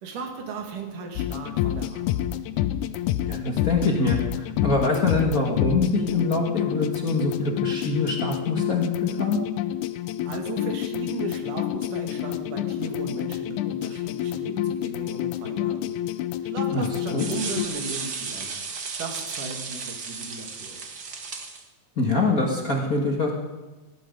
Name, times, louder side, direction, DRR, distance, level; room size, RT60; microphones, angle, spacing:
voice 1, 0.0-2.2 10.3-15.9 16.4-18.5 19.0-20.9, right 4 dB, 85° right, 3 dB, 3.6 m, -36 dB
sound 1, 1.2-17.7, left 12 dB, 80° left, 2.1 m, -28 dB
voice 2, 3.2-9.4 16.7-16.9 17.1-17.3 22.0-23.3, left 3 dB, 40° left, -1 dB, 1.4 m, -24 dB
sound 2, 17.2-21.6, right 5 dB, 45° right, 1.4 m, -34 dB
18.5 x 14.5 x 5.2 m, 1.2 s
omnidirectional pair, 3.6 m